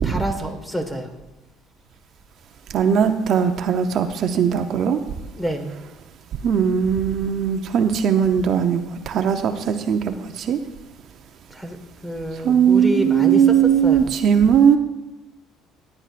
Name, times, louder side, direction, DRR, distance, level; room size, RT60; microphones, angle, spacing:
voice 1, 0.0-1.1 5.3-5.7 11.5-11.8 12.0-14.1, equal, 5° left, 5 dB, 1.6 m, -27 dB
voice 2, 2.7-5.0 6.4-10.6 12.4-14.8, right 8 dB, 60° right, 7 dB, 0.7 m, -19 dB
16.5 x 9.7 x 2.5 m, 1.0 s
supercardioid pair, 95°, 0 cm